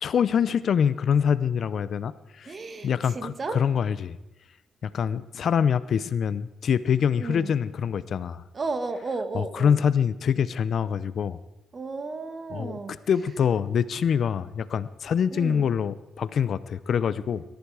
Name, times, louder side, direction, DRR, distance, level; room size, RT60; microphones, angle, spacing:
voice 1, 0.0-2.5 2.8-4.2 4.8-8.4 9.3-11.4 12.5-17.4, left 7 dB, 55° left, 17 dB, 0.6 m, -25 dB
voice 2, 2.5-3.6 7.2-7.5 8.5-9.8 11.7-13.0 15.3-15.7, right 3 dB, 35° right, 10 dB, 1.6 m, -33 dB
19.0 x 13.0 x 4.8 m, 0.96 s
cardioid pair, 90°, 0 cm